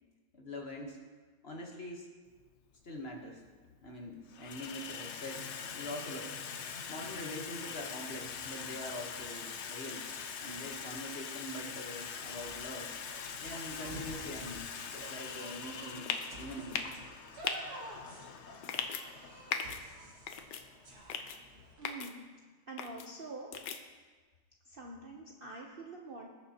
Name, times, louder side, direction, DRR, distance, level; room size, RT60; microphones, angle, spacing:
voice 1, 0.3-1.0 1.4-2.1 2.8-3.4 3.8-5.4 5.7-6.3 6.9-10.0 10.4-12.9 13.4-16.1 16.4-16.9, left 1 dB, 40° left, 0 dB, 1.2 m, -44 dB
Water tap faucet / Sink (filling or washing), 2.4-2.5 3.4-3.8 4.1-21.7, left 6 dB, 60° left, 0.7 m, -44 dB
sound 1, 11.7-21.9, right 2 dB, 65° right, 2.1 m, -51 dB
sound 2, 16.1-16.3 16.7-17.0 17.4-17.6 18.6-19.0 19.5-19.8 20.3-20.6 21.1-21.4 21.8-22.1 22.8-23.1 23.5-23.8, left 7 dB, 80° left, 1.3 m, -36 dB
voice 2, 21.8-22.2 22.7-23.8 24.6-26.3, right 2 dB, 45° right, -1 dB, 0.7 m, -46 dB
19.5 x 6.7 x 2.9 m, 1.4 s
omnidirectional pair, 1.9 m